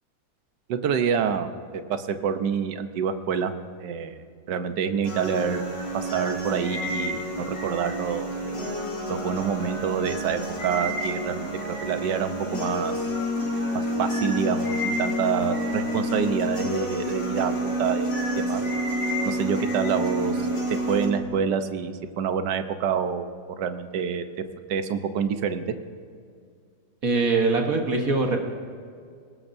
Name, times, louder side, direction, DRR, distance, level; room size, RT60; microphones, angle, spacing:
voice 1, 0.7-1.5 1.9-3.5 3.8-4.2 4.5-5.6 5.9-8.3 9.1-13.0 14.0-18.6 19.2-20.4 20.9-23.3 23.6-24.2 24.7-25.6, right 7 dB, 70° right, 9 dB, 1.5 m, -27 dB
sound 1, 5.0-21.1, equal, 65° left, 3.8 m, -29 dB
voice 2, 27.0-28.4, right 3 dB, 50° right, 2 dB, 1.6 m, -22 dB
21.0 x 19.0 x 2.7 m, 2.2 s
omnidirectional pair, 2.0 m